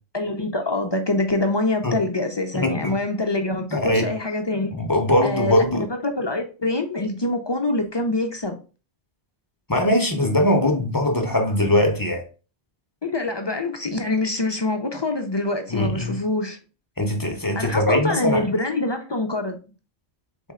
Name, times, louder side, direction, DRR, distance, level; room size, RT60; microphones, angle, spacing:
voice 1, 0.1-4.7 5.2-8.6 13.0-16.6 17.6-19.6, left 2 dB, 45° left, 0.3 m, -25 dB
voice 2, 2.5-3.0 3.7-4.1 4.7-5.9 9.7-12.2 15.7-16.2 17.0-18.4, left 1 dB, 20° left, 0.7 m, -21 dB
4.2 x 3.4 x 3.6 m
omnidirectional pair, 1.1 m